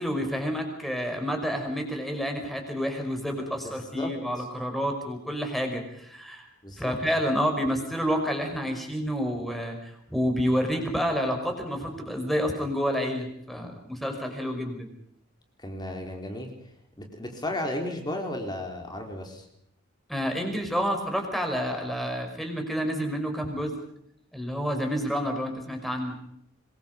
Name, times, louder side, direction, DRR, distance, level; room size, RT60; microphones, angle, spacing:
voice 1, 0.0-6.5 6.8-14.9 20.1-23.8 24.3-26.2, equal, ahead, 4 dB, 5.5 m, -29 dB
voice 2, 3.6-4.1 4.4-4.5 6.6-6.9 15.6-16.5 17.0-19.4, left 1 dB, 20° left, 3 dB, 4.3 m, -34 dB
26.5 x 22.5 x 5.4 m, 0.72 s
head